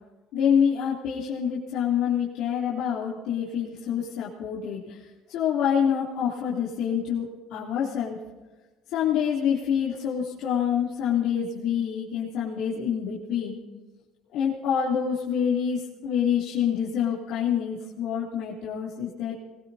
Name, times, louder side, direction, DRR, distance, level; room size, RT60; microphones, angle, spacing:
voice 1, 0.3-8.2 8.9-13.6 14.3-19.4, left 8 dB, 75° left, -7 dB, 3.1 m, -26 dB
24.0 x 21.5 x 2.8 m, 1.3 s
cardioid pair, 115°, 0 cm